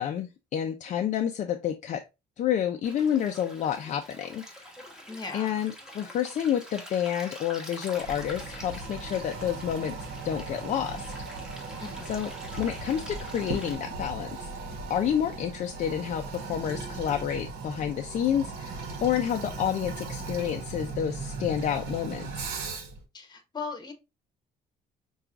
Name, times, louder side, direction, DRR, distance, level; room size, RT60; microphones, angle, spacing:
voice 1, 0.0-2.0 2.4-4.7 5.3-9.9 10.2-11.1 12.1-12.3 12.6-14.5 14.9-22.5, left 9 dB, 45° left, 0.4 m, -29 dB
Stream, 2.8-13.8, left 1 dB, 5° right, 1.2 m, -45 dB
voice 2, 5.1-5.5 11.8-12.1 23.1-23.9, left 4 dB, 25° left, 1.0 m, -38 dB
Toilet flush, 8.0-23.0, right 3 dB, 70° right, 1.0 m, -38 dB
5.7 x 2.4 x 2.4 m
cardioid pair, 110°, 17 cm